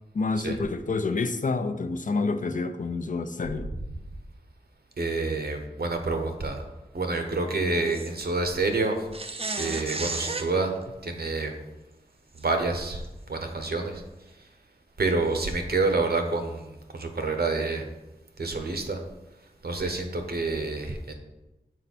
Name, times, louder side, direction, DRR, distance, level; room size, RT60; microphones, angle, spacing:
voice 1, 0.1-3.7, left 3 dB, 50° left, 9 dB, 0.5 m, -28 dB
voice 2, 5.0-6.6 6.9-9.1 9.6-11.5 12.3-14.5 15.0-17.9 18.4-19.0 19.6-21.2, right 3 dB, 70° right, 5 dB, 0.9 m, -28 dB
sound 1, 7.9-8.1 9.1-10.5 12.4-12.5 13.0-13.1 15.3-15.5, right 3 dB, 35° right, 0.5 m, -33 dB
6.5 x 4.5 x 4.2 m, 1.0 s
wide cardioid pair, 75°, 17 cm